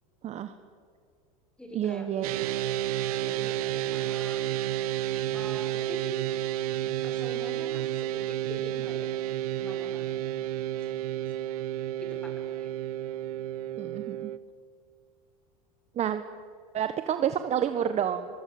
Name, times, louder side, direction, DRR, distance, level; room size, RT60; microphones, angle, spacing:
voice 1, 0.2-0.5 1.7-2.3 13.8-14.3 16.0-16.2 16.7-18.3, right 9 dB, 35° right, 10 dB, 1.3 m, -29 dB
voice 2, 1.6-2.2 3.1-4.4 5.3-6.3 7.0-9.1 9.6-10.0 10.9-11.0 12.0-12.3 12.5-12.7, equal, 5° left, 3 dB, 6.2 m, -44 dB
sound 1, 2.2-14.4, right 13 dB, 80° right, 1.0 m, -31 dB
24.0 x 23.0 x 7.9 m, 2.3 s
supercardioid pair, 110°, 19 cm